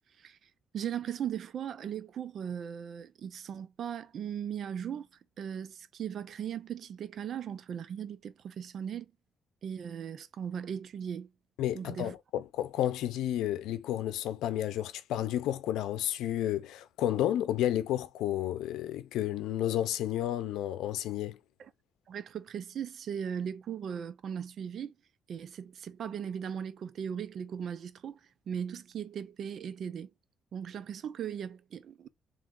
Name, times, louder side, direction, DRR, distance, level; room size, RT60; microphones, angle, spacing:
voice 1, 0.7-5.1 5.4-9.1 9.6-11.3 11.7-12.1 21.6-21.7 22.1-24.9 25.3-28.2 28.5-30.1 30.5-32.1, right 8 dB, 60° right, 0.6 m, -38 dB
voice 2, 11.6-21.4, left 12 dB, 90° left, 0.6 m, -31 dB
3.6 x 3.0 x 3.7 m
cardioid pair, 90°, 0 cm